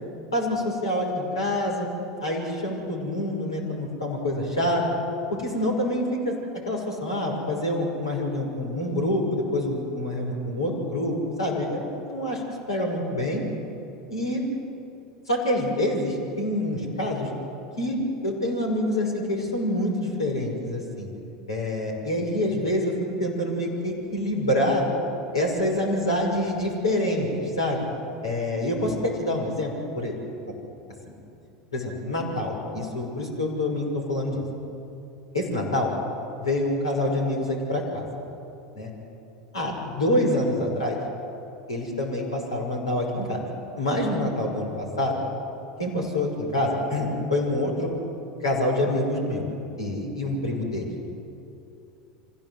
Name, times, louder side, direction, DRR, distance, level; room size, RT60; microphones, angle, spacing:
voice 1, 0.3-1.9 2.2-4.8 5.3-6.3 6.7-12.4 12.7-13.4 14.1-14.4 15.3-17.3 17.8-18.0 18.2-21.1 21.5-22.9 23.2-24.8 25.3-27.8 28.2-30.1 31.7-34.4 35.3-35.9 36.4-38.0 38.7-38.9 39.5-41.0 41.7-43.4 43.8-45.2 45.8-47.9 48.4-49.5 49.8-51.1, left 1 dB, 80° left, -1 dB, 5.9 m, -26 dB
26.0 x 16.0 x 8.0 m, 2.7 s
figure-of-eight pair, 80°, 3 cm